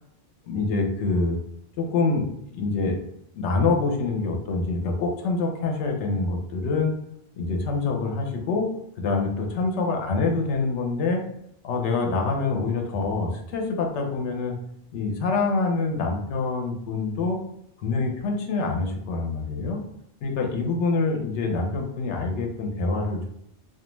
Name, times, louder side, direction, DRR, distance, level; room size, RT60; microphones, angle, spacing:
voice 1, 0.4-1.4 1.8-2.2 2.5-3.0 3.3-6.9 7.4-8.7 9.0-11.2 11.6-14.5 14.9-17.4 17.8-19.8 20.2-23.3, left 3 dB, 85° left, 2 dB, 0.9 m, -25 dB
2.3 x 2.2 x 3.0 m, 0.76 s
omnidirectional pair, 1.1 m